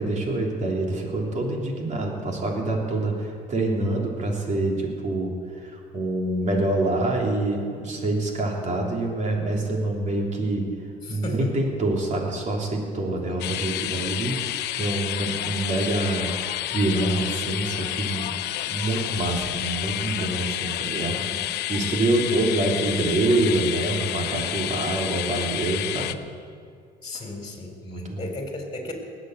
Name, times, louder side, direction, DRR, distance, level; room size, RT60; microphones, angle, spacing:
voice 1, 0.0-5.3 5.9-10.7 11.1-14.4 14.8-16.3 16.7-18.4 18.7-21.4 21.7-26.2 27.8-28.3, right 2 dB, 45° right, 0 dB, 3.3 m, -26 dB
voice 2, 11.0-11.5 13.1-13.5 21.1-21.5 27.0-28.9, left 2 dB, 25° left, 2 dB, 3.8 m, -36 dB
sound 1, 13.4-26.1, left 13 dB, 75° left, 0.7 m, -30 dB
20.0 x 8.2 x 8.0 m, 2.2 s
cardioid pair, 110°, 17 cm